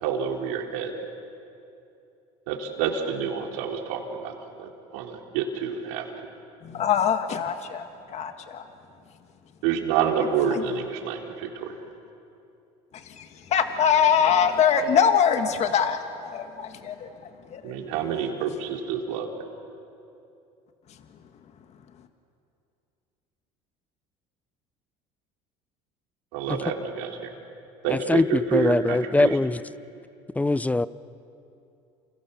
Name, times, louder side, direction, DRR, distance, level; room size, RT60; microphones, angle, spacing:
voice 1, 0.0-0.9 2.5-4.3 4.6-6.0 9.6-11.7 17.6-19.3 26.3-27.3 27.8-29.3, right 7 dB, 85° right, 3.9 m, -28 dB
voice 2, 6.6-8.7 10.5-10.6 12.9-17.7, left 7 dB, 50° left, 1.7 m, -24 dB
voice 3, 27.9-29.6 30.4-30.9, left 2 dB, 10° left, 0.7 m, -22 dB
29.5 x 28.0 x 7.1 m
supercardioid pair, 95°, 15 cm